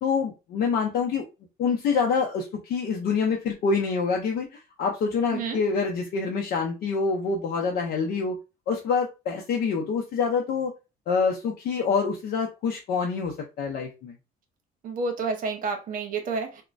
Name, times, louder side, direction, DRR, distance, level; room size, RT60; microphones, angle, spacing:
voice 1, 0.0-1.2 1.6-8.4 8.7-10.7 11.1-14.1, left 5 dB, 65° left, 0.6 m, -26 dB
voice 2, 5.3-5.6 14.8-16.6, right 4 dB, 55° right, 0.8 m, -30 dB
3.0 x 2.1 x 2.5 m
cardioid pair, 110°, 17 cm